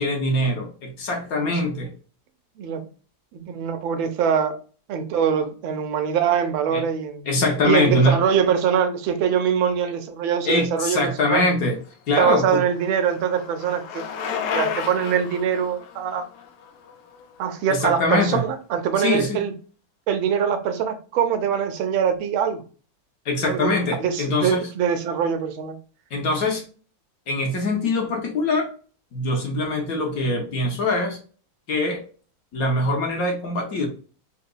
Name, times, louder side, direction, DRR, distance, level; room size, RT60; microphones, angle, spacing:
voice 1, 0.0-1.9 6.7-6.8 7.3-8.2 10.5-11.8 12.1-12.6 17.7-18.4 19.0-19.4 23.2-24.7 26.1-26.6 27.3-28.7 29.1-31.2 31.7-32.0 32.5-33.9, left 2 dB, 60° left, 2 dB, 1.1 m, -23 dB
voice 2, 3.3-4.6 4.9-7.3 7.6-11.0 11.3-11.4 12.2-14.0 14.5-16.2 17.4-19.5 20.1-22.6 23.4-23.7 24.0-25.7, right 8 dB, 85° right, 8 dB, 1.4 m, -23 dB
Bicycle, 11.9-17.9, left 7 dB, 85° left, 0.7 m, -33 dB
3.8 x 2.8 x 2.2 m, 0.39 s
omnidirectional pair, 2.1 m